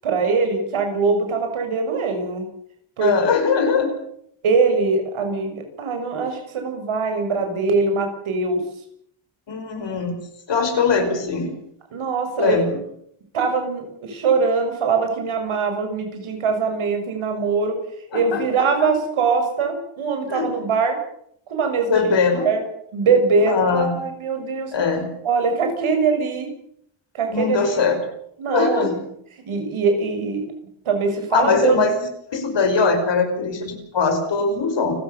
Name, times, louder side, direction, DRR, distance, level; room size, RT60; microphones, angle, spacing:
voice 1, 0.0-2.5 3.0-3.1 4.4-8.6 11.9-12.7 13.3-17.8 18.1-21.0 21.5-22.1 22.4-22.6 22.9-24.7 25.2-26.5 27.1-27.7 28.4-29.0 29.5-30.5 30.9-31.8, right 4 dB, 80° right, 5 dB, 7.0 m, -22 dB
voice 2, 3.0-3.9 9.5-10.2 10.5-11.6 12.4-12.8 18.1-18.5 18.8-18.9 20.3-20.5 21.9-22.5 23.5-24.0 24.7-25.1 27.3-28.0 28.5-28.9 31.3-32.0 32.3-34.9, left 4 dB, 60° left, 5 dB, 5.8 m, -21 dB
29.5 x 15.0 x 7.2 m, 0.71 s
wide cardioid pair, 125°, 48 cm